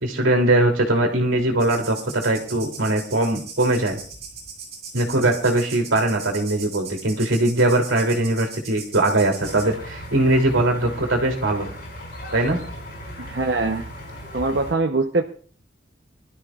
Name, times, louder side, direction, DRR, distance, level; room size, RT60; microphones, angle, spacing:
voice 1, 0.0-4.0 4.9-11.7 12.3-12.6, right 1 dB, 85° right, 3 dB, 3.1 m, -21 dB
sound 1, 1.6-9.6, right 5 dB, 35° right, 5.7 m, -39 dB
sound 2, 9.4-14.7, equal, 55° left, 5.5 m, -37 dB
voice 2, 13.2-13.9 14.3-15.2, right 3 dB, 60° right, 3 dB, 0.9 m, -23 dB
24.5 x 13.0 x 2.4 m, 0.42 s
head